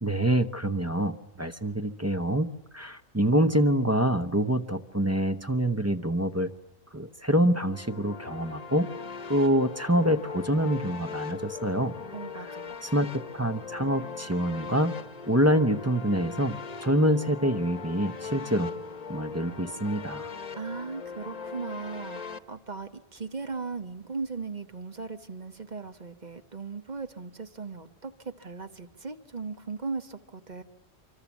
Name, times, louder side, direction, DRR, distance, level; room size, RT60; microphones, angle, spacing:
voice 1, 0.0-2.5 2.7-6.5 6.9-8.9 9.3-11.9 12.8-15.0 15.3-18.7 19.1-20.3, right 1 dB, 15° right, 9 dB, 0.7 m, -26 dB
sound 1, 7.6-22.4, left 5 dB, 40° left, 1.1 m, -40 dB
voice 2, 12.1-12.8 20.6-30.6, right 4 dB, 40° right, 8 dB, 1.2 m, -38 dB
25.5 x 24.5 x 7.2 m, 0.99 s
omnidirectional pair, 1.1 m